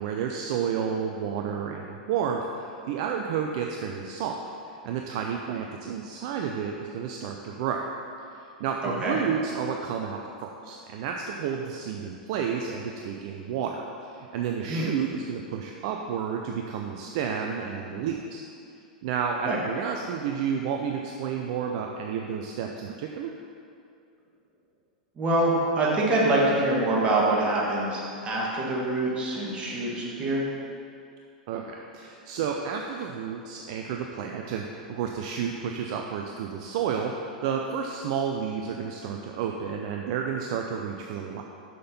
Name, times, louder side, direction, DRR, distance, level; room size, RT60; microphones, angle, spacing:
voice 1, 0.0-7.8 8.3-18.4 19.0-23.3 31.5-41.4, right 7 dB, 50° right, 2 dB, 0.5 m, -31 dB
voice 2, 8.8-9.2 14.7-14.9 19.4-19.6 25.2-30.5, right 2 dB, 25° right, -5 dB, 2.0 m, -25 dB
6.6 x 6.0 x 5.3 m, 2.5 s
figure-of-eight pair, 95°, 4 cm